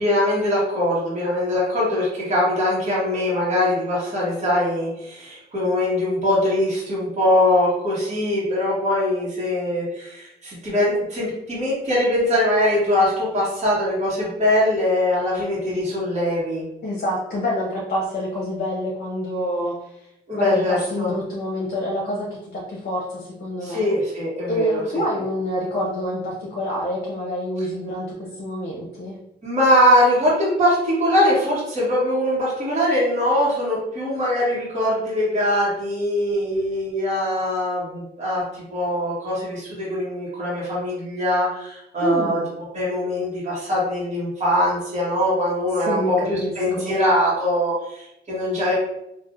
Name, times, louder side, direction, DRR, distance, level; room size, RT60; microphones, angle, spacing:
voice 1, 0.0-16.6 20.3-21.1 23.6-25.0 29.4-42.4 42.7-48.7, left 1 dB, 35° right, -7 dB, 1.3 m, -22 dB
voice 2, 16.8-19.7 20.3-23.9 24.5-29.2 42.0-42.5 45.8-46.9, equal, 55° left, -3 dB, 0.8 m, -27 dB
3.4 x 2.5 x 2.5 m, 0.86 s
cardioid pair, 85°, 19 cm